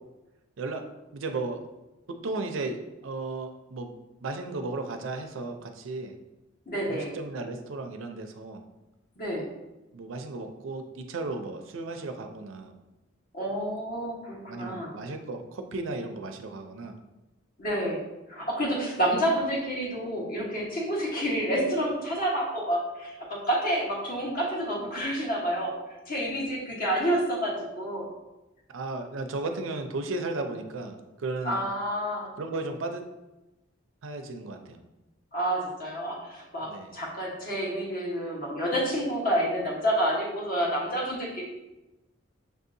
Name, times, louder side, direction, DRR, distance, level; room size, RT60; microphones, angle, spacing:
voice 1, 0.6-0.9 1.1-1.6 2.1-3.9 4.2-6.1 6.9-8.6 9.9-12.7 14.5-16.9 28.7-31.6 32.4-33.0 34.0-34.8 36.6-36.9, right 3 dB, 85° right, 6 dB, 0.5 m, -35 dB
voice 2, 6.7-7.2 9.2-9.4 13.3-14.9 17.6-18.0 18.3-25.7 26.1-28.1 31.4-32.3 35.3-41.4, right 1 dB, 50° left, -3 dB, 1.2 m, -29 dB
6.5 x 2.7 x 2.6 m, 1.0 s
head